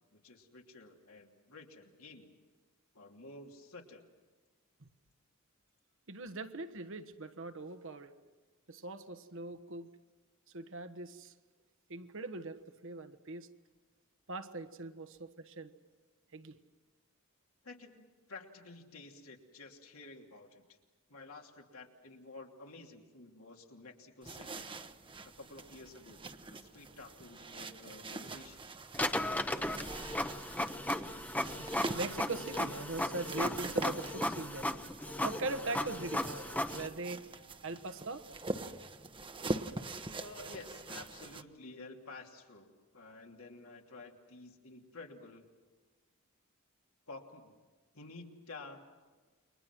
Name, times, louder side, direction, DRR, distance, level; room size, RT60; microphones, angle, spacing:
voice 1, 0.1-2.3 2.9-4.0 17.6-20.8 21.1-24.7 25.2-28.7 40.1-45.5 47.1-47.6 47.9-48.8, left 3 dB, 80° left, 1 dB, 2.9 m, -51 dB
voice 2, 6.1-8.2 8.7-9.9 10.5-11.3 11.9-13.5 14.3-15.7 16.3-16.6 31.6-34.7 35.0-38.3, right 2 dB, 65° right, 9 dB, 1.3 m, -41 dB
sound 1, 24.2-41.4, right 2 dB, 25° right, 1.0 m, -43 dB
Printer, 28.9-36.9, left 1 dB, 10° left, 0.9 m, -36 dB
29.5 x 23.5 x 6.1 m, 1.3 s
head